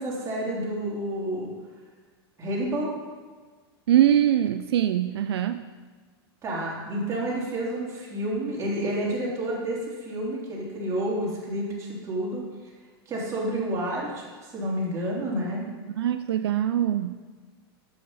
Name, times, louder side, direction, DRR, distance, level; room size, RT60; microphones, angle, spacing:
voice 1, 0.0-1.5 2.4-2.9 6.4-12.4 13.1-15.7, right 1 dB, 20° right, -5 dB, 3.3 m, -29 dB
voice 2, 3.9-5.6 15.9-17.1, right 11 dB, 75° right, 9 dB, 0.5 m, -23 dB
10.0 x 8.0 x 4.1 m, 1.4 s
hypercardioid pair, 125°, 13 cm